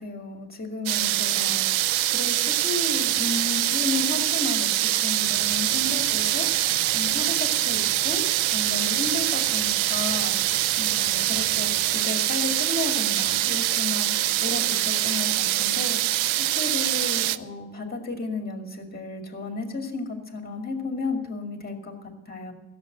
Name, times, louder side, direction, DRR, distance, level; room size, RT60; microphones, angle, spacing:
voice 1, 0.0-1.9 2.1-6.7 6.9-8.2 8.5-22.5, left 3 dB, 20° left, 3 dB, 2.3 m, -33 dB
sound 1, 0.9-17.4, right 15 dB, 85° right, 0.6 m, -24 dB
sound 2, 5.3-12.0, right 1 dB, 25° right, 2.9 m, -45 dB
15.5 x 7.4 x 8.0 m, 0.97 s
cardioid pair, 135°, 46 cm